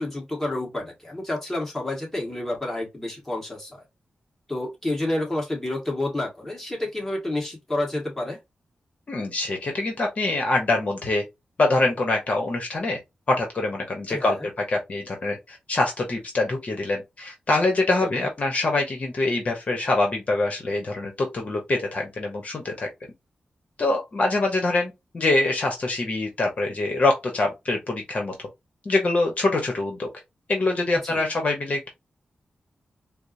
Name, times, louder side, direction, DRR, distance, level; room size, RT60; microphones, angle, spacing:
voice 1, 0.0-3.8 4.5-8.4 14.1-14.3 18.2-18.3 31.0-31.2, left 1 dB, 10° left, 1.5 m, -29 dB
voice 2, 9.1-11.2 11.6-13.0 13.3-22.9 23.8-28.3 28.8-30.1 30.5-31.9, left 2 dB, 50° left, 0.9 m, -24 dB
4.4 x 2.0 x 2.5 m
wide cardioid pair, 95°, 3 cm